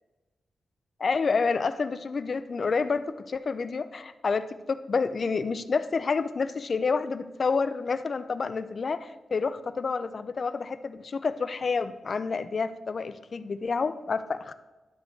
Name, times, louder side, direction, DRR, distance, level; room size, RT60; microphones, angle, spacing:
voice 1, 1.0-14.5, left 4 dB, 45° left, 12 dB, 0.5 m, -29 dB
11.5 x 5.2 x 4.5 m, 1.2 s
wide cardioid pair, 130°, 0 cm